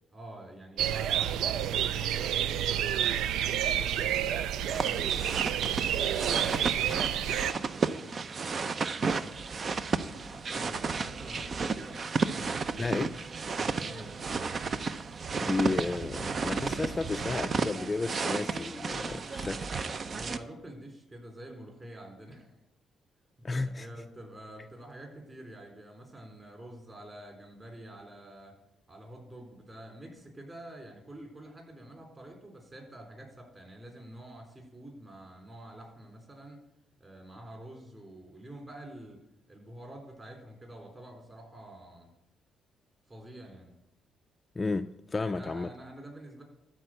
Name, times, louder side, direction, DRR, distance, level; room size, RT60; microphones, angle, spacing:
voice 1, 0.1-5.3 5.9-7.9 8.2-9.2 9.9-12.8 13.6-14.2 20.1-22.5 23.6-28.5 28.9-36.6 37.0-39.2 39.5-42.1 43.1-43.7 45.1-46.4, right 1 dB, 25° right, 4.0 m, -48 dB
sound 1, 0.8-7.5, right 10 dB, 85° right, 0.4 m, -29 dB
sound 2, 4.7-20.4, right 4 dB, 45° right, 0.6 m, -33 dB
voice 2, 12.8-13.1 15.4-19.7 23.4-23.9 44.6-45.7, left 3 dB, 25° left, 0.4 m, -32 dB
13.0 x 4.5 x 7.9 m
cardioid pair, 90°, 0 cm